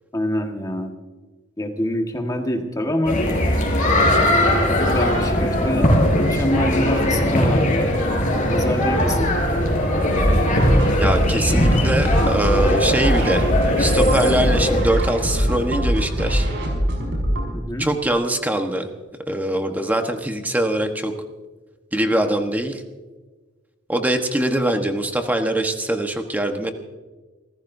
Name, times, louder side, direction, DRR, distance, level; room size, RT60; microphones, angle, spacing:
voice 1, 0.1-0.9 1.6-3.2 4.8-5.9 6.2-7.9 8.5-9.3 17.5-17.9, left 1 dB, 20° left, 3 dB, 1.6 m, -25 dB
sound 1, 3.1-14.8, left 1 dB, 45° left, 4.5 m, -19 dB
Dramatic Bass Hit, 8.9-12.9, equal, 70° left, 4.5 m, -36 dB
sound 2, 10.1-17.5, equal, 65° right, 5.9 m, -22 dB
voice 2, 11.0-13.5 13.8-16.5 17.8-18.9 19.3-21.1 21.9-22.8 23.9-26.7, right 1 dB, 10° right, 4 dB, 1.2 m, -22 dB
27.5 x 15.5 x 2.7 m, 1.3 s
head